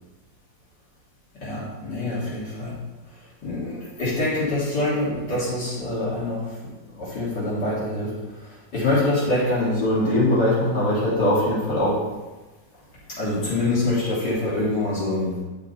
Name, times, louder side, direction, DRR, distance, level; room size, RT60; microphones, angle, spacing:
voice 1, 1.4-2.7 3.4-6.5 7.0-12.0 13.2-15.3, left 1 dB, 90° left, -9 dB, 4.0 m, -24 dB
11.5 x 5.1 x 4.3 m, 1.2 s
omnidirectional pair, 1.8 m